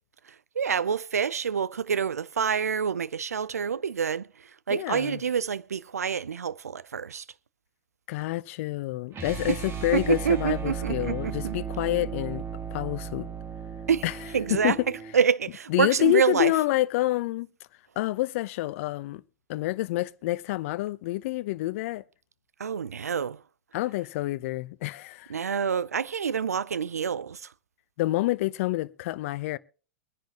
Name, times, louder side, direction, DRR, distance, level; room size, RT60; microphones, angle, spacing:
voice 1, 0.6-7.2 9.5-9.6 9.9-11.5 13.9-14.0 14.3-16.5 22.6-23.4 25.3-27.5, right 7 dB, 90° right, 0.5 m, -27 dB
voice 2, 4.7-5.2 8.1-12.4 12.7-13.3 14.0-14.1 14.5-14.8 15.7-17.5 18.0-19.2 19.5-22.0 23.7-25.3 28.0-29.6, left 18 dB, 60° left, 0.7 m, -28 dB
sound 1, 9.1-15.2, right 8 dB, 30° right, 2.9 m, -35 dB
23.5 x 10.5 x 2.9 m
hypercardioid pair, 100°, 8 cm